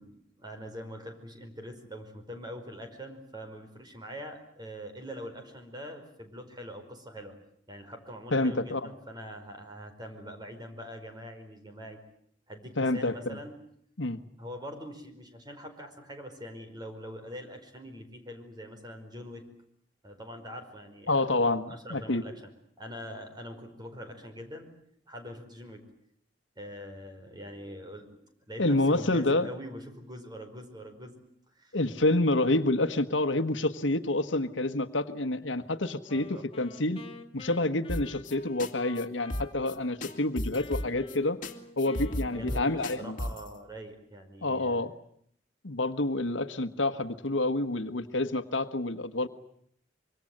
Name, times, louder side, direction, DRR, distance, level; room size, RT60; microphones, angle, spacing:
voice 1, 0.0-7.4 7.7-12.0 12.5-13.6 14.4-19.5 20.0-22.4 22.8-24.7 25.1-25.8 26.6-28.2 28.5-31.1 31.5-31.8 32.2-32.3 36.1-36.4 42.0-44.8, equal, 25° right, 5 dB, 5.1 m, -43 dB
voice 2, 8.3-8.9 12.8-13.4 14.0-14.2 21.1-22.2 28.6-29.5 31.7-37.0 37.3-41.4 41.8-43.2 44.4-44.9 45.6-49.3, left 2 dB, 80° left, 10 dB, 1.5 m, -28 dB
Wind instrument woodwind instrument, 36.1-40.2 40.5-43.4, left 2 dB, 30° left, 1.8 m, -49 dB
sound 1, 37.9-38.3 38.6-38.7 39.0-39.1 39.3-39.8 40.0-41.2 41.4-41.5 41.8-43.5, left 1 dB, 45° left, 2.4 m, -33 dB
25.5 x 24.0 x 7.9 m, 0.66 s
head